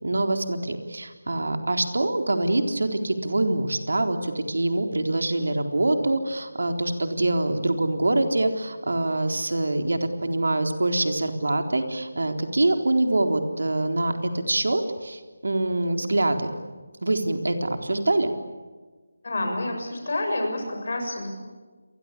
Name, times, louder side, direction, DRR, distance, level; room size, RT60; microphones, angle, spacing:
voice 1, 0.0-16.5 17.0-18.3, right 2 dB, 80° right, 5 dB, 3.9 m, -25 dB
voice 2, 19.2-21.3, left 2 dB, 45° left, 4 dB, 6.9 m, -28 dB
29.5 x 23.0 x 8.5 m, 1.4 s
figure-of-eight pair, 180°, 0 cm